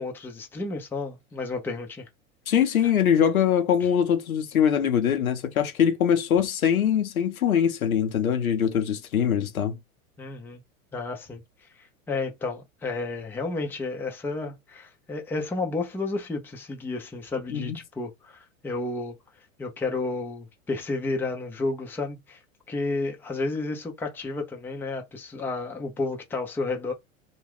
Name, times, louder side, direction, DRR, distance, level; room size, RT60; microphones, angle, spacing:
voice 1, 0.0-2.1 10.2-10.6 10.9-11.4 12.1-19.2 19.6-22.4 22.7-26.9, left 3 dB, 5° left, 0.5 m, -31 dB
voice 2, 2.5-9.8 17.5-17.8, left 8 dB, 85° left, 0.8 m, -23 dB
2.4 x 2.2 x 3.5 m
hypercardioid pair, 100°, 41 cm